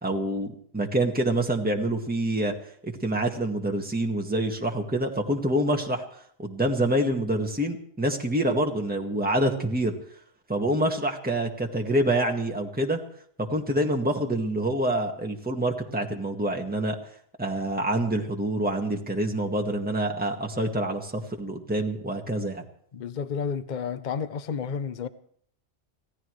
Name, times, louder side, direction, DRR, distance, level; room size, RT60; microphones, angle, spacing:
voice 1, 0.0-2.5 2.8-6.0 6.4-9.9 10.5-13.0 13.4-17.0 17.4-22.6, right 1 dB, 10° right, 1 dB, 1.8 m, -26 dB
voice 2, 22.9-25.1, left 6 dB, 45° left, 13 dB, 0.9 m, -31 dB
25.0 x 16.5 x 3.2 m, 0.62 s
omnidirectional pair, 1.2 m